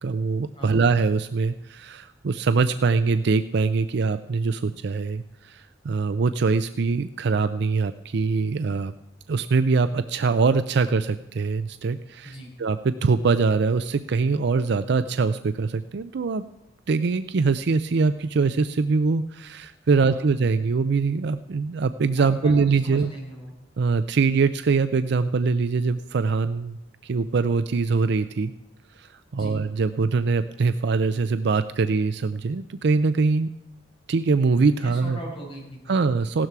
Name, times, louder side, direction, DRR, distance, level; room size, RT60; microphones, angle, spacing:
voice 1, 0.0-8.9 9.3-16.4 16.9-23.1 23.8-28.5 29.0-33.5 34.1-35.2 35.9-36.5, right 4 dB, 65° right, 12 dB, 0.5 m, -23 dB
voice 2, 19.9-20.2 22.2-23.5 29.3-29.6 34.8-36.0, right 1 dB, 30° left, -3 dB, 6.4 m, -39 dB
16.5 x 12.5 x 4.7 m, 0.94 s
head